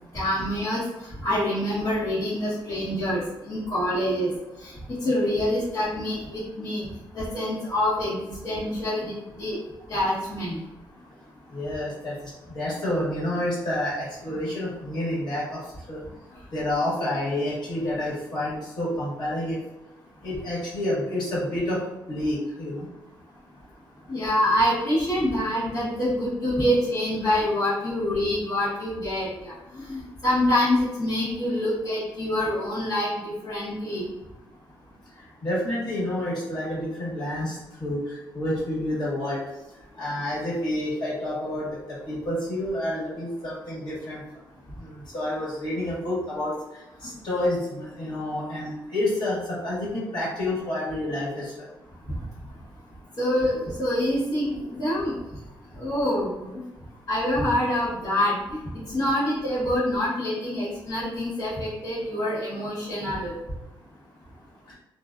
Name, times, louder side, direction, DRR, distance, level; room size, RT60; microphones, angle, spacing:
voice 1, 0.1-4.3 4.6-6.9 7.1-9.6 9.9-10.6 24.1-34.0 52.1-52.2 53.2-55.2 55.7-56.6 57.1-63.3, left 1 dB, 45° left, -12 dB, 1.1 m, -26 dB
voice 2, 11.5-16.0 16.5-19.6 20.2-21.8 22.1-22.9 35.4-39.4 40.0-44.2 44.8-51.7, left 1 dB, 60° left, -8 dB, 1.4 m, -29 dB
2.4 x 2.2 x 2.4 m, 0.99 s
cardioid pair, 95°, 8 cm